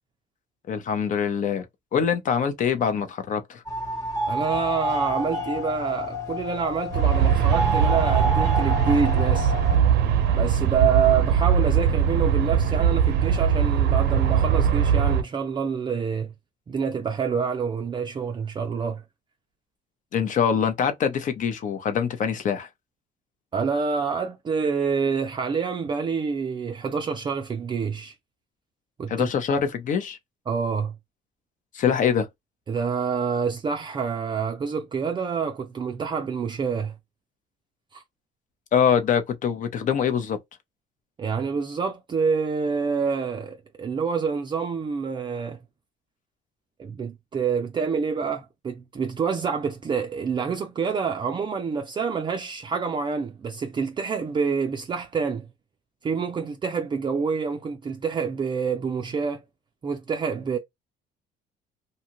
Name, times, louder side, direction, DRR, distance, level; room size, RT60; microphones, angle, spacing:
voice 1, 0.7-1.7 1.9-3.6 20.1-22.7 29.1-30.2 31.7-32.3 38.7-40.4, left 7 dB, 50° left, 0.7 m, -24 dB
sound 1, 3.7-9.8, left 1 dB, 15° left, 1.0 m, -29 dB
voice 2, 4.3-9.5 10.3-16.3 16.7-19.0 23.5-28.1 29.0-29.3 30.5-30.9 32.7-36.9 37.9-38.0 41.2-45.6 46.8-55.5 56.0-59.4 59.8-60.6, right 6 dB, 30° right, 0.4 m, -27 dB
Aircraft, 6.9-15.2, right 8 dB, 80° right, 0.6 m, -21 dB
2.7 x 2.4 x 2.9 m
cardioid pair, 110°, 17 cm